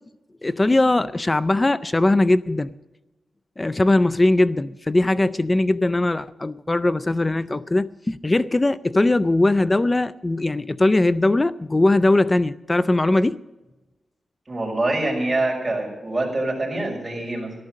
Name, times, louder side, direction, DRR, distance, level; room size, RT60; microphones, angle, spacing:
voice 1, 0.4-2.7 3.6-13.4, left 2 dB, 20° left, 0.4 m, -20 dB
voice 2, 14.5-17.5, right 2 dB, 15° right, 6.0 m, -25 dB
14.5 x 12.0 x 6.4 m
wide cardioid pair, 105°, 0 cm